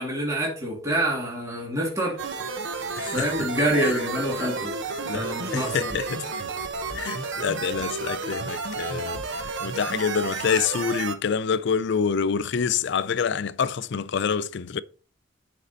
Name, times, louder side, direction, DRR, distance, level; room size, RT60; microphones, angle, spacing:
voice 1, 0.0-2.2 3.1-4.7 5.1-6.0, right 1 dB, 15° right, 2.4 m, -26 dB
sound 1, 2.2-11.2, right 4 dB, 65° right, 1.0 m, -31 dB
voice 2, 3.0-3.3 3.8-4.0 5.0-6.3 6.9-14.8, left 6 dB, 60° left, 0.4 m, -27 dB
9.9 x 5.1 x 4.1 m
head